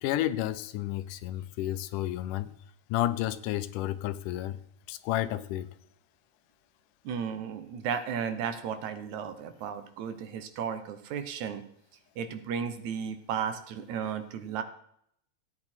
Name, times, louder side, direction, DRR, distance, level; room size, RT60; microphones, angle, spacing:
voice 1, 0.0-2.5 2.9-4.6 4.9-5.7, left 14 dB, 80° left, 2.2 m, -31 dB
voice 2, 7.0-11.6 12.2-14.6, right 7 dB, 70° right, 2.2 m, -34 dB
16.0 x 8.8 x 4.4 m
omnidirectional pair, 3.7 m